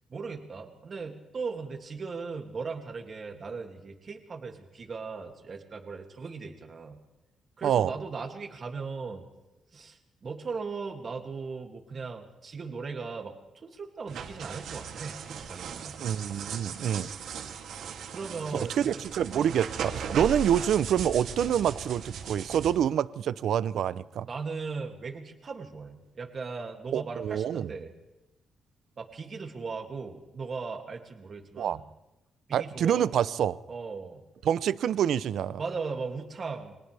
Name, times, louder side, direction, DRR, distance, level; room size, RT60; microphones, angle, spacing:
voice 1, 0.1-7.0 7.6-9.3 9.7-13.3 13.6-15.9 18.1-19.0 19.3-19.5 23.8-24.0 24.2-27.9 29.0-31.8 32.5-33.2 33.7-34.2 35.6-36.8, right 4 dB, 35° right, 3 dB, 2.6 m, -38 dB
sound 1, 14.1-22.7, right 6 dB, 90° right, 2.8 m, -38 dB
voice 2, 16.0-17.1 18.5-24.3 26.9-27.7 31.6-31.8 32.5-33.6 34.4-35.6, right 9 dB, 65° right, 16 dB, 0.7 m, -27 dB
29.5 x 25.0 x 3.5 m, 1.0 s
wide cardioid pair, 170°, 0 cm